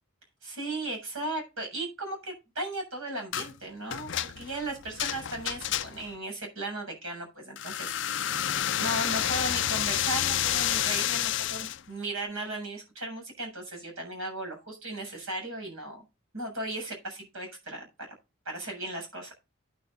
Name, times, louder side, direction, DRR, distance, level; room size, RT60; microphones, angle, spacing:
voice 1, 0.4-16.0 16.3-17.8 18.5-19.3, right 2 dB, 80° right, 2 dB, 7.3 m, -36 dB
sound 1, 3.3-3.5 3.9-6.2 7.6-11.8, left 11 dB, 60° left, 0.5 m, -29 dB
11.5 x 10.5 x 2.6 m, 0.26 s
head